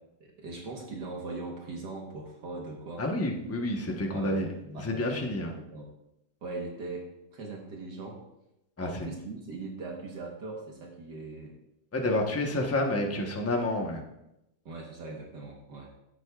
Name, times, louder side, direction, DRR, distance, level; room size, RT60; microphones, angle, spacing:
voice 1, 0.2-3.0 4.1-5.3 5.6-5.9 6.4-8.2 8.8-11.6 14.7-15.9, right 3 dB, 65° right, 0 dB, 1.9 m, -40 dB
voice 2, 3.0-4.5 4.8-5.5 8.8-8.9 11.9-14.0, left 1 dB, 10° left, 1 dB, 0.7 m, -29 dB
15.0 x 8.0 x 2.4 m, 0.87 s
omnidirectional pair, 2.0 m